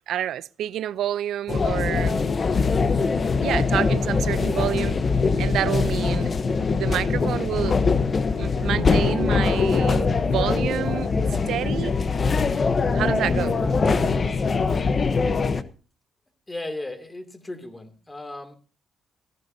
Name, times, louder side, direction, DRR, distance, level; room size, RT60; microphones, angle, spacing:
voice 1, 0.1-2.2 3.3-5.0 5.4-6.3 6.7-7.8 8.4-11.1 11.5-11.9 12.9-13.6, right 11 dB, 75° right, 0.5 m, -28 dB
sound 1, 1.5-15.6, left 4 dB, 40° left, 1.0 m, -22 dB
voice 2, 16.5-18.6, left 2 dB, 20° left, 2.7 m, -35 dB
16.5 x 15.0 x 2.8 m
cardioid pair, 90°, 0 cm